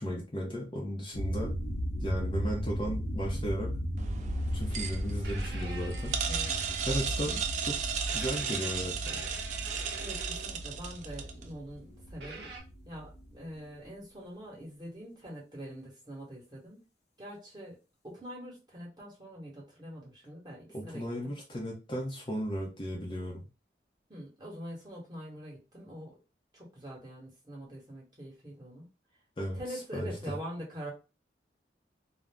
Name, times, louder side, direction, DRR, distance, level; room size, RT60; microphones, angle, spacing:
voice 1, 0.0-1.5 2.0-3.7 4.5-6.1 6.8-7.8 8.1-9.2 20.7-23.4 29.4-30.4, equal, 30° left, -2 dB, 0.6 m, -35 dB
sound 1, 1.1-13.3, equal, 65° left, 0.7 m, -36 dB
sound 2, 4.0-11.4, right 6 dB, 40° right, 0.3 m, -35 dB
sound 3, 5.2-7.2 8.1-10.7 12.2-12.6, right 3 dB, 70° right, 0.8 m, -46 dB
voice 2, 6.2-6.6 10.0-11.8 12.1-12.5 12.8-16.8 17.2-17.8 18.0-21.3 24.1-26.1 26.5-28.8 29.5-30.9, equal, 25° right, -4 dB, 1.1 m, -44 dB
2.5 x 2.0 x 3.3 m, 0.30 s
head